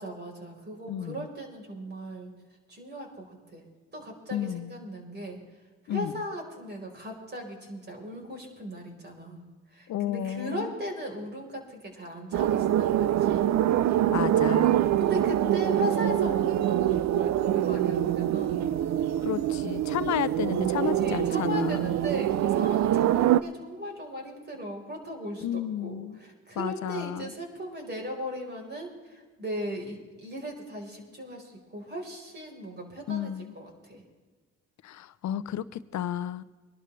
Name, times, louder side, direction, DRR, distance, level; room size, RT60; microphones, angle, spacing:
voice 1, 0.0-2.3 2.7-3.6 3.9-5.4 5.8-9.4 9.7-13.4 13.8-18.7 20.8-34.0, equal, 35° right, 1 dB, 4.4 m, -38 dB
voice 2, 0.9-1.3 4.3-4.8 5.9-6.1 9.9-10.7 14.1-14.8 19.2-21.9 25.4-26.2 26.6-27.3 33.1-33.5 34.8-36.4, left 11 dB, 65° left, 15 dB, 0.7 m, -32 dB
sound 1, 12.3-23.4, right 12 dB, 65° right, 0.6 m, -25 dB
23.0 x 12.0 x 3.3 m, 1.4 s
cardioid pair, 90°, 30 cm